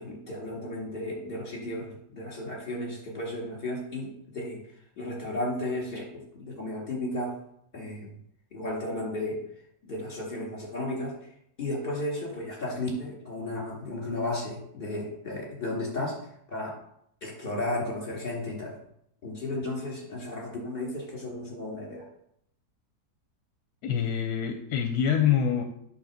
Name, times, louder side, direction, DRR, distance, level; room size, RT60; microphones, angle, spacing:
voice 1, 0.0-4.6 5.0-7.3 7.7-8.1 8.5-9.4 9.8-11.1 11.6-16.2 16.5-16.7 17.2-18.7 19.2-22.0, left 1 dB, 35° left, -2 dB, 2.8 m, -34 dB
voice 2, 23.8-25.6, left 8 dB, 75° left, 5 dB, 1.2 m, -25 dB
8.6 x 3.8 x 6.5 m, 0.72 s
omnidirectional pair, 1.7 m